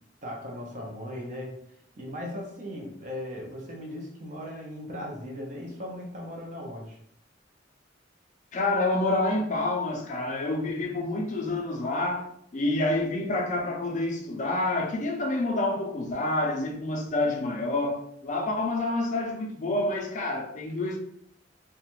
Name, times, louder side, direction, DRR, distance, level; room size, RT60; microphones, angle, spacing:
voice 1, 0.2-1.6 2.0-7.0, left 1 dB, 45° right, 0.6 m, -38 dB
voice 2, 8.5-21.0, left 2 dB, 40° left, 0.4 m, -28 dB
2.3 x 2.1 x 3.0 m
head